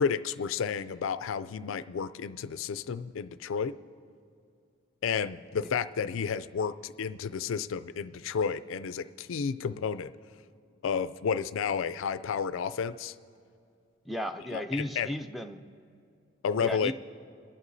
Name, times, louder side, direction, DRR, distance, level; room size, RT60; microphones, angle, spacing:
voice 1, 0.0-3.7 5.0-10.1 10.8-13.1 14.5-15.1 16.4-16.9, left 6 dB, 75° left, 13 dB, 0.4 m, -31 dB
voice 2, 14.1-15.6 16.6-16.9, left 1 dB, ahead, 7 dB, 0.3 m, -34 dB
29.5 x 11.0 x 2.7 m, 2.4 s
head